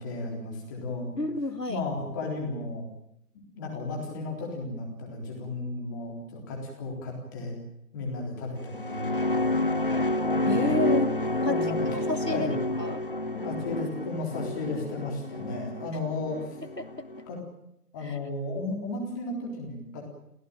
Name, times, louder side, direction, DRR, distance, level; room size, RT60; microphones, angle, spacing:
voice 1, 0.0-1.1 1.7-2.8 3.3-7.6 7.9-9.6 10.3-10.8 11.4-11.9 12.3-12.7 13.4-16.6 17.3-17.4 17.9-20.0, left 2 dB, 10° left, 0 dB, 3.8 m, -34 dB
voice 2, 1.2-1.8 10.4-11.1 11.4-13.0 16.8-17.1 18.0-18.2, left 2 dB, 85° left, 9 dB, 3.0 m, -31 dB
sound 1, 8.6-17.2, left 1 dB, 35° left, 0.9 m, -29 dB
27.5 x 17.0 x 8.9 m, 0.77 s
figure-of-eight pair, 155°, 47 cm